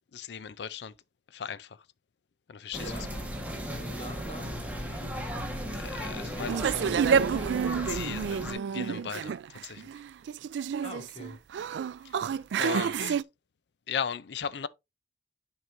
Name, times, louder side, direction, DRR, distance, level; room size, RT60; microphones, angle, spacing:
voice 1, 0.1-0.9 1.3-1.8 2.5-2.9 3.7-3.8 4.9-5.1 5.7-6.5 7.7-9.9 12.0-12.3 12.6-13.2 13.9-14.7, left 7 dB, 75° left, 0.5 m, -37 dB
voice 2, 2.7-3.1 3.7-4.5 6.1-7.5 10.8-11.4, left 1 dB, 35° left, 2.2 m, -42 dB
sound 1, 2.7-8.5, equal, 10° right, 1.3 m, -36 dB
sound 2, 6.5-13.2, right 7 dB, 80° right, 0.3 m, -29 dB
10.5 x 4.7 x 2.6 m
head